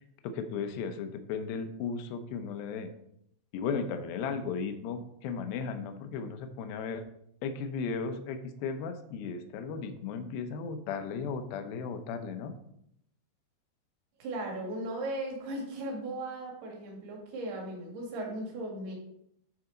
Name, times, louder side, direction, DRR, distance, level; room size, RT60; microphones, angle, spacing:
voice 1, 0.2-2.9 3.5-7.0 7.4-12.6, left 5 dB, 75° left, 8 dB, 2.2 m, -35 dB
voice 2, 14.2-18.9, right 1 dB, 65° right, 0 dB, 3.8 m, -37 dB
12.5 x 4.8 x 3.9 m, 0.75 s
omnidirectional pair, 5.0 m